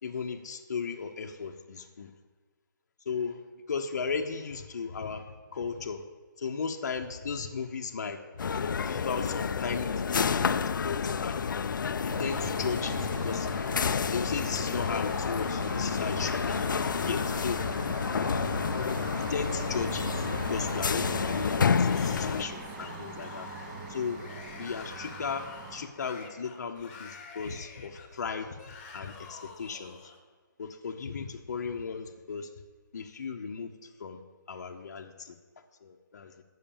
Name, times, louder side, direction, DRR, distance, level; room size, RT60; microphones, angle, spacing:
voice 1, 0.0-2.1 3.1-3.4 3.7-5.3 5.5-6.0 6.4-11.4 12.0-13.5 14.1-16.8 17.1-17.6 19.1-23.5 23.9-24.2 24.5-30.0 30.6-32.5 32.9-34.2 34.5-35.4 35.8-36.4, left 5 dB, 55° left, 3 dB, 0.8 m, -36 dB
sound 1, 8.4-22.4, left 6 dB, 75° left, 0.4 m, -30 dB
sound 2, 12.1-25.9, right 3 dB, 15° right, 0.8 m, -40 dB
Yell / Screaming, 21.9-30.2, left 5 dB, 30° left, 1.3 m, -48 dB
8.8 x 6.5 x 7.0 m, 1.4 s
hypercardioid pair, 170°, 11 cm